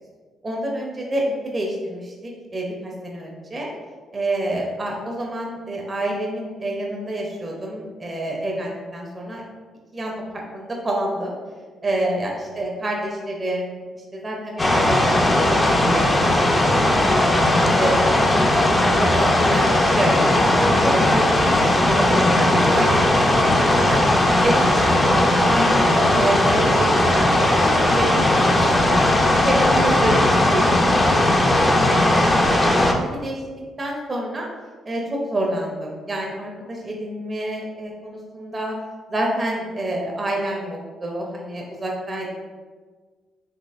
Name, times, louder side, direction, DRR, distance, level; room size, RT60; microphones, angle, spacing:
voice 1, 0.4-3.7 4.1-9.4 9.9-10.1 10.5-11.4 11.8-13.8 14.1-16.4 16.8-18.2 18.5-24.0 24.4-31.2 32.2-33.4 33.8-34.5 34.9-38.7 39.1-42.4, right 1 dB, 30° right, -1 dB, 0.5 m, -28 dB
sound 1, 14.6-32.9, left 1 dB, 20° left, 0.4 m, -18 dB
4.0 x 2.9 x 2.4 m, 1.4 s
cardioid pair, 90°, 0 cm